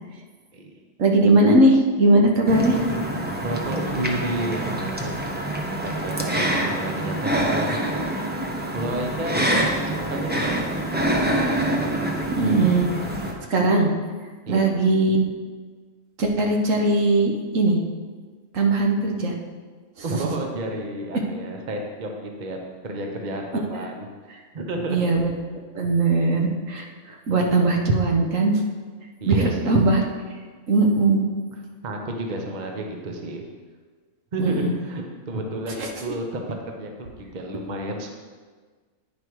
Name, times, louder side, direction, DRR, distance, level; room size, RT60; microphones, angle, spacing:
voice 1, 1.0-2.8 12.3-12.9 13.5-13.9 14.5-15.2 16.2-17.8 18.5-19.3 23.7-23.8 24.9-25.3 25.7-28.6 29.3-30.0 30.7-31.2 34.4-34.7 35.8-35.9, right 2 dB, 65° right, 1 dB, 1.3 m, -19 dB
sound 1, 2.5-13.3, right 1 dB, 10° right, 0.6 m, -26 dB
voice 2, 3.4-5.3 5.8-8.0 8.7-9.4 9.8-10.7 14.5-14.7 20.0-24.1 24.5-25.0 29.2-29.8 31.8-33.4 34.3-38.1, right 1 dB, 40° right, 2 dB, 0.9 m, -31 dB
9.5 x 5.1 x 4.7 m, 1.5 s
omnidirectional pair, 1.5 m